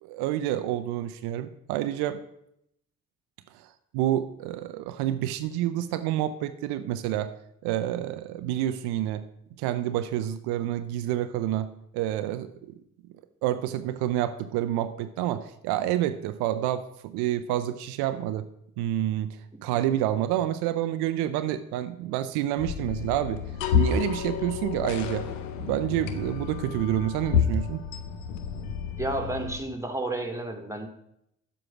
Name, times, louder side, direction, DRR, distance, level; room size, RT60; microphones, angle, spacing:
voice 1, 0.0-2.2 3.5-7.3 7.6-9.3 9.6-11.7 11.9-12.8 13.4-18.5 18.8-23.4 23.7-25.3 25.6-27.8, right 12 dB, 80° right, 11 dB, 0.7 m, -28 dB
sound 1, 22.6-29.6, left 7 dB, 90° left, 0.9 m, -29 dB
voice 2, 29.0-30.9, right 2 dB, 10° right, 5 dB, 2.4 m, -31 dB
9.7 x 7.9 x 6.0 m, 0.77 s
hypercardioid pair, 45°, 38 cm